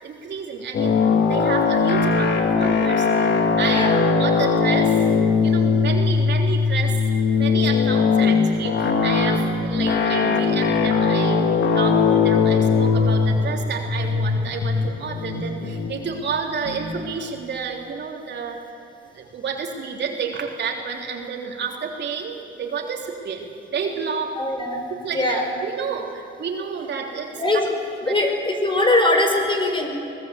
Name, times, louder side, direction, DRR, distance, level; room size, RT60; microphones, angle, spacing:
voice 1, 0.0-5.0 5.4-7.0 7.3-11.4 11.7-18.6 19.1-23.4 23.7-24.4 25.0-27.4 28.1-28.3, right 6 dB, 60° right, 2 dB, 3.4 m, -30 dB
sound 1, 0.7-17.3, left 5 dB, 65° left, 2.4 m, -20 dB
voice 2, 3.6-4.0 24.4-24.8 25.1-25.5 27.4-27.7 28.0-29.9, left 2 dB, 25° left, 3 dB, 4.7 m, -21 dB
23.0 x 18.5 x 8.3 m, 2.8 s
cardioid pair, 90°, 20 cm